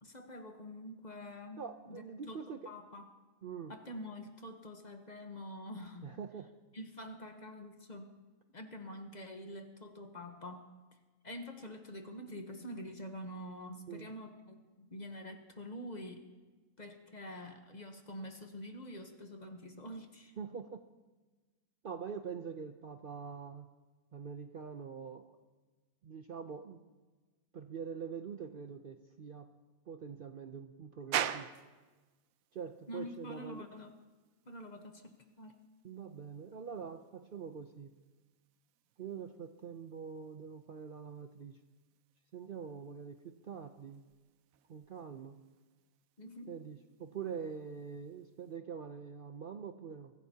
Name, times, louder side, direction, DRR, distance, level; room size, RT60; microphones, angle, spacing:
voice 1, 0.0-3.1 3.7-6.2 6.7-8.1 8.5-10.7 11.2-16.2 16.8-20.3 32.9-34.0 34.5-35.5 46.2-46.6, left 1 dB, 35° left, 5 dB, 1.1 m, -46 dB
voice 2, 1.6-2.7 3.4-3.7 6.0-6.5 13.9-14.1 20.4-20.8 21.8-23.7 24.1-25.4 26.0-26.9 27.5-29.5 29.9-31.5 32.5-33.7 35.8-37.9 39.0-41.6 42.3-44.0 44.7-45.4 46.5-50.1, right 6 dB, 55° right, 7 dB, 0.6 m, -44 dB
sound 1, 31.1-48.6, right 10 dB, 85° right, 1.1 m, -47 dB
23.5 x 14.5 x 2.8 m, 1.3 s
omnidirectional pair, 1.4 m